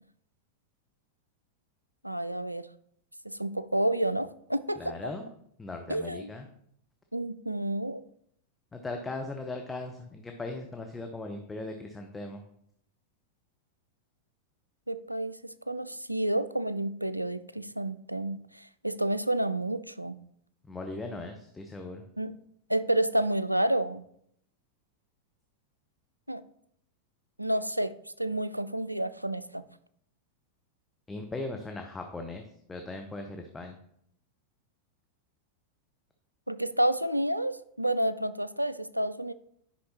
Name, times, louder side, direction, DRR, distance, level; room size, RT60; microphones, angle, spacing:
voice 1, 2.0-2.6 3.2-4.9 5.9-6.3 7.1-8.0 14.9-20.2 22.2-22.3 22.7-24.0 26.3-26.4 27.4-29.6 36.5-39.3, right 1 dB, 90° right, 14 dB, 0.3 m, -30 dB
voice 2, 4.8-5.3 5.6-6.5 8.7-12.4 20.7-22.0 31.1-32.4 32.7-33.7, left 2 dB, 10° left, 3 dB, 0.7 m, -38 dB
9.6 x 5.5 x 2.9 m, 0.70 s
figure-of-eight pair, 90°, 0 cm